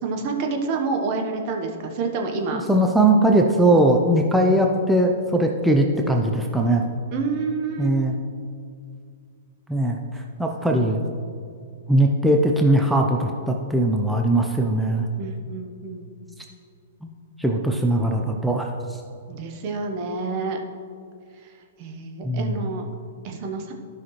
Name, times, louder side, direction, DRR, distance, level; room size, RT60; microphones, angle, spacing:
voice 1, 0.0-2.6 7.1-8.0 15.2-16.1 19.3-20.6 21.4-21.5 21.8-22.9 23.2-23.7, right 4 dB, 45° right, 3 dB, 1.1 m, -28 dB
voice 2, 2.5-6.8 7.8-8.1 9.7-11.0 11.9-15.1 17.4-19.0 22.2-22.6, right 1 dB, 5° right, 1 dB, 0.6 m, -20 dB
12.5 x 5.7 x 3.1 m, 2.3 s
hypercardioid pair, 115°, 0 cm